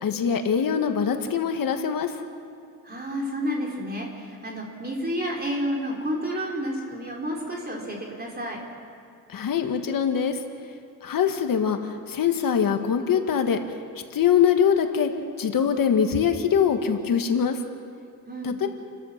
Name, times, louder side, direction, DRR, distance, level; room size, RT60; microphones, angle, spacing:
voice 1, 0.0-2.1 9.3-10.4 11.0-13.6 14.1-15.1 15.4-17.6 18.4-18.7, left 7 dB, 70° left, 6 dB, 1.5 m, -23 dB
voice 2, 2.8-8.6 18.3-18.5, equal, 25° right, -1 dB, 4.0 m, -30 dB
29.5 x 13.0 x 7.2 m, 2.4 s
wide cardioid pair, 140°, 36 cm